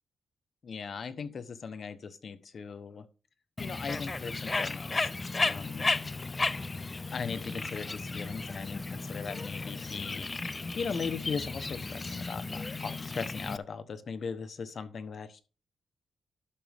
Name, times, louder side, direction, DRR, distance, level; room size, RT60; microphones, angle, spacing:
voice 1, 0.6-3.1 3.6-5.9 7.1-15.4, left 5 dB, 55° left, 11 dB, 1.0 m, -39 dB
Bird, 3.6-13.6, left 3 dB, 30° left, 0.4 m, -34 dB
11.5 x 6.0 x 3.5 m, 0.34 s
cardioid pair, 80°, 0 cm